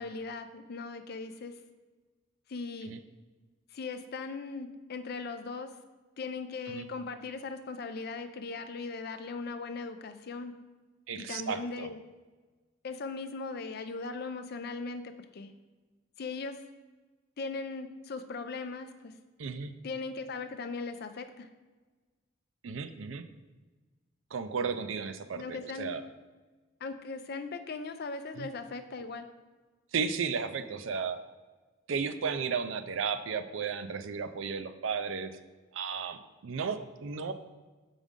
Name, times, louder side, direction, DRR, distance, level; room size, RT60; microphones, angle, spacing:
voice 1, 0.0-1.5 2.5-3.0 3.7-5.8 6.2-10.5 11.2-12.0 12.8-15.5 16.2-16.6 17.4-19.1 19.8-21.5 25.3-26.0 26.8-29.3, left 4 dB, 55° left, 9 dB, 0.5 m, -39 dB
voice 2, 11.1-11.9 19.4-19.7 22.6-23.3 24.3-26.0 28.4-28.5 29.9-31.2 31.9-35.4 35.7-37.3, right 6 dB, 80° right, 10 dB, 0.5 m, -34 dB
7.3 x 5.3 x 3.6 m, 1.3 s
head